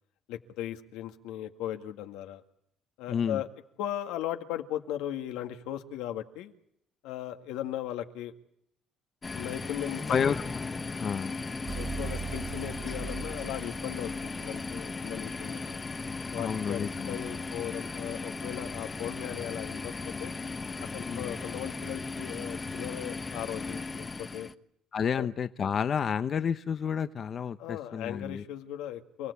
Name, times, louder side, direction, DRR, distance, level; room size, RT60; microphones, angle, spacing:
voice 1, 0.3-2.4 3.0-3.5 3.8-6.5 7.0-8.3 9.3-10.4 11.7-15.8 16.3-19.9 20.2-20.3 20.8-24.5 25.1-25.3 27.6-29.3, left 12 dB, 90° left, 6 dB, 2.0 m, -37 dB
voice 2, 3.1-3.4 10.1-10.4 11.0-11.3 16.4-17.1 21.0-21.3 24.9-28.4, left 7 dB, 45° left, 11 dB, 0.9 m, -30 dB
sound 1, 9.2-24.5, left 4 dB, 25° left, 1.2 m, -37 dB
sound 2, 11.6-15.2, right 4 dB, 25° right, 2.5 m, -40 dB
29.0 x 17.5 x 8.4 m, 0.74 s
cardioid pair, 105°, 0 cm